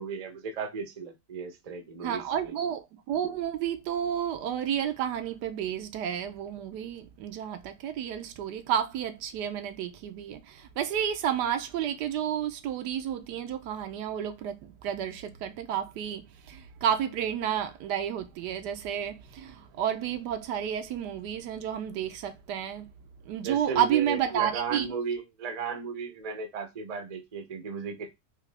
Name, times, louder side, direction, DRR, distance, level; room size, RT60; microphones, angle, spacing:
voice 1, 0.0-2.5 23.4-28.1, right 5 dB, 40° right, 0.5 m, -35 dB
voice 2, 2.0-22.9 23.3-24.9, right 9 dB, 85° right, 1.2 m, -31 dB
3.7 x 2.9 x 3.3 m
omnidirectional pair, 1.8 m